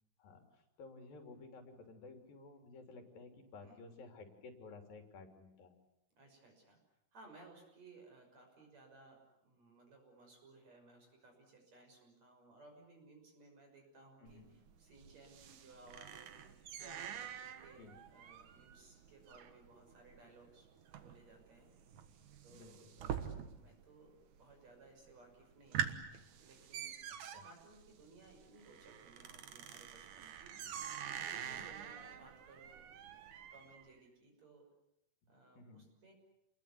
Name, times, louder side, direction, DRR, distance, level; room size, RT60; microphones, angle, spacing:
voice 1, 0.8-5.7 14.2-14.5 17.8-17.9 22.5-23.3 27.2-27.4 31.4-31.7 35.5-35.8, left 3 dB, 85° left, 5 dB, 5.0 m, -55 dB
voice 2, 6.2-6.8 7.1-9.2 9.4-16.5 16.8-20.7 20.9-21.7 22.4-25.9 26.4-26.9 27.2-30.5 31.2-32.8 33.4-34.6 35.3-36.1, right 3 dB, 50° right, 3 dB, 7.3 m, -61 dB
sound 1, 14.3-23.8 24.1-24.7 25.1-25.2 25.5-33.8, right 9 dB, 65° right, 2.7 m, -46 dB
29.0 x 21.5 x 8.4 m, 0.81 s
omnidirectional pair, 4.0 m